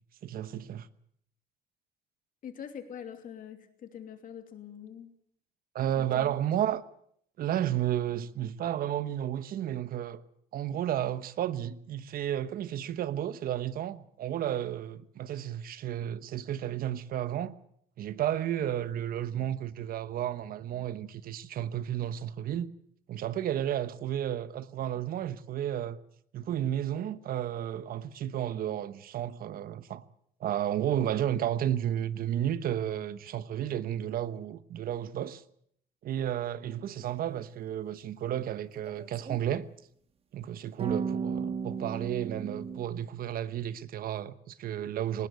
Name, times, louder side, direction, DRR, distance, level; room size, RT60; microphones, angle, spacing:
voice 1, 0.2-0.9 5.7-6.8 7.4-10.2 10.5-17.6 18.0-22.7 23.1-26.0 26.3-30.0 30.4-35.4 36.0-39.7 40.3-45.3, right 11 dB, 60° right, 1.1 m, -32 dB
voice 2, 2.4-5.1 6.0-6.3, left 8 dB, 55° left, 2.9 m, -44 dB
sound 1, 38.9-39.4 40.8-42.8, right 6 dB, 35° right, 1.7 m, -34 dB
19.5 x 18.0 x 8.1 m
cardioid pair, 110°, 17 cm